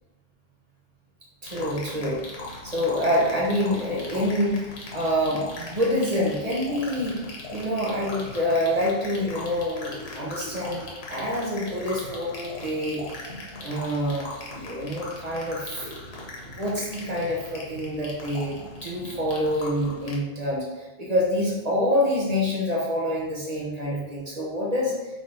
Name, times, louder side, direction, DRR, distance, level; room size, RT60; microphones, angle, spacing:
voice 1, 1.4-2.2 2.6-7.2 7.5-13.0 13.6-15.9 16.4-25.0, left 1 dB, 40° right, -4 dB, 1.2 m, -26 dB
sound 1, 1.5-20.2, left 2 dB, 90° left, 1.2 m, -39 dB
3.8 x 3.4 x 3.9 m, 1.1 s
omnidirectional pair, 1.0 m